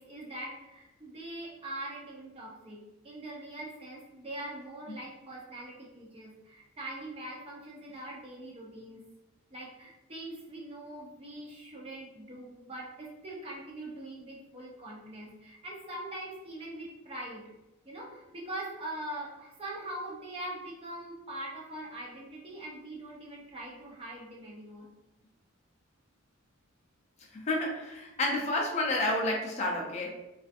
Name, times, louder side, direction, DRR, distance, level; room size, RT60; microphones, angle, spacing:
voice 1, 0.0-2.8 3.0-9.0 9.5-17.4 17.8-24.9, right 1 dB, 25° right, -4 dB, 0.6 m, -42 dB
voice 2, 27.3-30.1, left 1 dB, 30° left, -1 dB, 0.4 m, -30 dB
2.5 x 2.3 x 2.5 m, 0.98 s
head